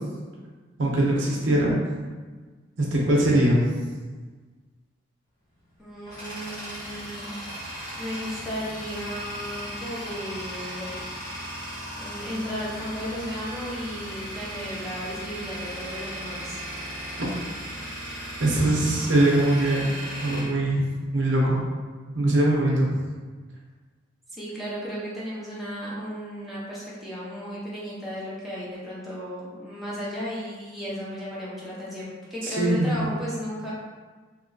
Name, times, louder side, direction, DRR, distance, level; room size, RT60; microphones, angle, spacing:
voice 1, 0.8-1.7 2.8-3.6 18.4-19.8 20.2-21.6 22.1-22.9 32.4-33.1, right 1 dB, 70° right, -4 dB, 0.7 m, -22 dB
Tools, 5.6-21.4, equal, 20° left, 1.1 m, -37 dB
voice 2, 5.8-7.3 8.0-11.0 12.0-16.6 24.3-33.7, equal, ahead, -9 dB, 0.7 m, -34 dB
3.0 x 2.9 x 2.6 m, 1.4 s
head